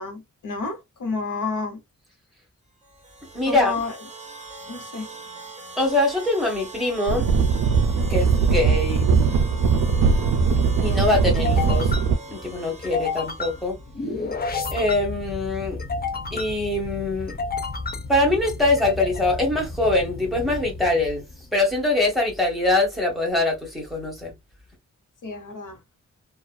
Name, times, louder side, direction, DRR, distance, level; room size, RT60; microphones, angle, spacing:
voice 1, 0.0-1.8 3.5-4.0 4.6-5.7 25.2-25.8, left 3 dB, 75° left, 0.9 m, -31 dB
sound 1, 2.8-14.1, right 3 dB, 20° right, 0.7 m, -41 dB
voice 2, 3.3-3.7 5.8-7.3 8.1-9.1 10.8-11.9 12.3-13.8 14.7-15.8 16.3-17.4 18.1-21.2 21.5-24.3, left 2 dB, ahead, 1.2 m, -23 dB
sound 2, 7.1-12.2, right 5 dB, 75° right, 0.5 m, -20 dB
sound 3, 9.5-21.8, left 3 dB, 30° left, 0.5 m, -33 dB
2.4 x 2.3 x 2.2 m
wide cardioid pair, 145°, 31 cm